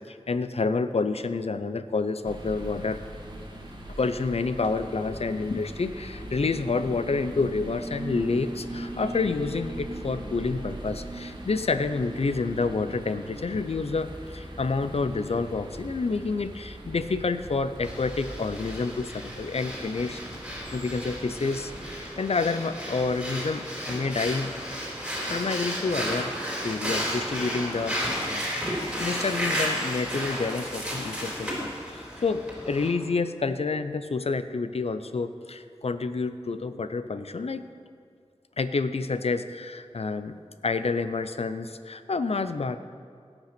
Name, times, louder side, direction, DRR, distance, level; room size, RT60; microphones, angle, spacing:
voice 1, 0.0-3.0 4.0-20.2 20.7-24.5 25.3-28.6 29.0-37.6 38.6-40.4 40.6-42.8, left 4 dB, 65° left, 11 dB, 0.6 m, -29 dB
sound 1, 2.2-21.9, right 1 dB, 40° right, 1.9 m, -40 dB
Breathing, 17.8-32.9, equal, 5° right, 3.8 m, -33 dB
17.0 x 5.9 x 6.0 m, 2.2 s
wide cardioid pair, 70°, 11 cm